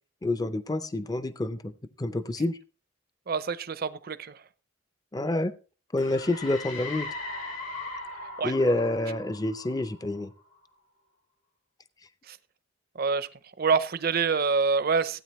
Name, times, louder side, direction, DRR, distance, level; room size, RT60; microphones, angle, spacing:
voice 1, 0.2-1.7 2.0-2.6 5.1-5.5 5.9-7.1 8.4-10.3, left 2 dB, 20° left, 13 dB, 0.5 m, -28 dB
voice 2, 3.3-4.4 8.4-8.5 12.3-12.4 13.0-13.3 13.6-15.2, right 5 dB, 50° right, 14 dB, 0.7 m, -26 dB
sound 1, 6.0-10.5, left 3 dB, 75° left, 2.2 m, -39 dB
16.0 x 9.0 x 3.1 m, 0.34 s
head